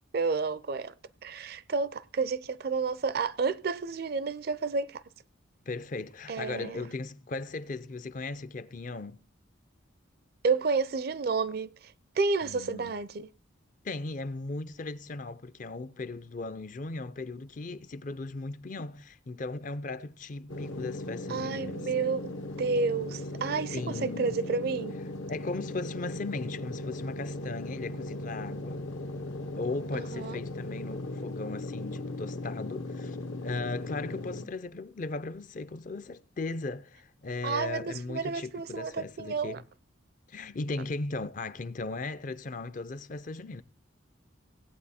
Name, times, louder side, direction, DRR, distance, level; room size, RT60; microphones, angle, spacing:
voice 1, 0.1-0.9 1.2-5.0 6.3-6.9 10.4-13.3 21.3-24.9 29.9-30.4 37.4-39.6, right 4 dB, 50° right, 0.4 m, -30 dB
voice 2, 5.7-9.2 12.4-12.9 13.8-21.9 23.7-24.4 25.3-28.8 29.5-33.2 33.4-39.6 40.3-43.6, left 3 dB, 40° left, 0.5 m, -37 dB
sound 1, 20.5-34.5, left 1 dB, 75° left, 1.0 m, -38 dB
17.0 x 8.3 x 4.2 m
head